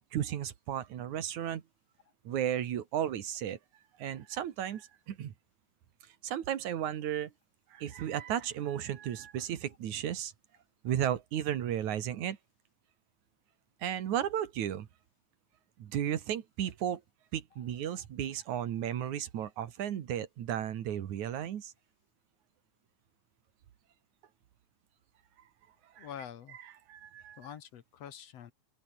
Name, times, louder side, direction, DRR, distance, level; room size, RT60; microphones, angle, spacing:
voice 1, 0.1-1.6 2.2-3.6 4.0-5.3 6.2-7.3 7.7-10.3 10.8-12.4 13.8-14.9 15.8-17.0 17.3-21.7 26.0-26.1 26.6-27.4, right 10 dB, 75° right, 3.0 m, -34 dB
voice 2, 26.0-26.6 27.4-28.5, left 9 dB, 60° left, 2.3 m, -46 dB
open air
omnidirectional pair, 3.4 m